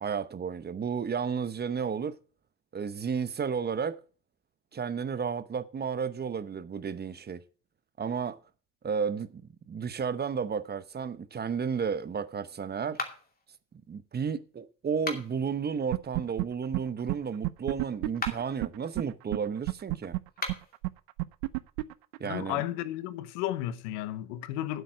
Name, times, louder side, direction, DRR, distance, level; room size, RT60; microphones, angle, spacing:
voice 1, 0.0-2.2 2.7-4.0 4.7-7.4 8.0-8.4 8.8-13.0 13.9-20.2 22.2-22.6, right 6 dB, 30° right, 0.9 m, -32 dB
sound 1, 12.9-13.5 14.9-15.5 18.1-18.6 20.3-20.8, left 3 dB, 25° left, 2.6 m, -37 dB
sound 2, 15.9-16.4 16.7-16.8 17.1-17.2 17.4-19.0 19.3-19.4 19.7-22.6, right 23 dB, 85° right, 0.7 m, -30 dB
voice 2, 22.2-24.8, left 13 dB, 90° left, 1.0 m, -33 dB
9.4 x 8.1 x 6.1 m
supercardioid pair, 90°, 34 cm